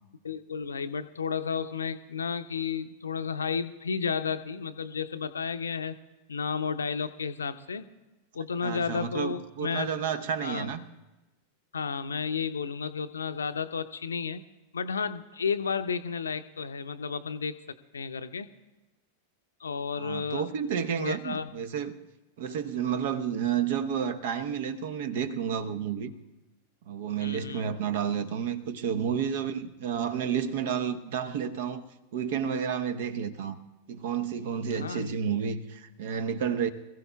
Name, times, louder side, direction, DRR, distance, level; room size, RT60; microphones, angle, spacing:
voice 1, 0.2-6.0 6.3-7.9 8.3-9.9 10.4-10.7 11.7-14.4 14.7-18.5 19.6-20.5 21.0-21.5 27.2-27.7 34.7-35.2, left 6 dB, 70° left, 11 dB, 0.6 m, -32 dB
voice 2, 8.6-10.8 20.0-21.9 22.4-26.1 26.8-31.8 32.1-33.6 33.9-36.7, right 7 dB, 55° right, 11 dB, 1.0 m, -31 dB
26.0 x 15.5 x 2.3 m, 1.1 s
figure-of-eight pair, 90°, 0 cm